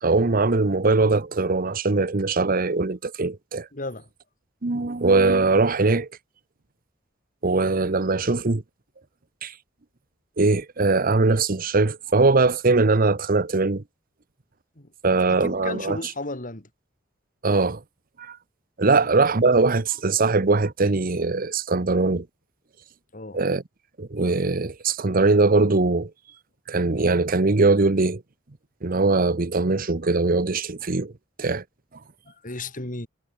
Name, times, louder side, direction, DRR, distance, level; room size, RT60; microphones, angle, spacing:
voice 1, 0.0-3.7 4.6-6.1 7.4-8.6 9.4-9.5 10.4-13.8 15.0-16.1 17.4-17.8 18.2-18.4 18.8-22.3 23.3-23.6 24.0-26.1 26.7-28.2 28.8-31.1 31.4-31.6, right 3 dB, 50° right, 1.0 m, -21 dB
voice 2, 3.7-4.1 14.8-14.9 15.3-16.7 18.9-19.1 23.1-23.4 32.3-33.1, left 2 dB, 45° left, 3.8 m, -34 dB
head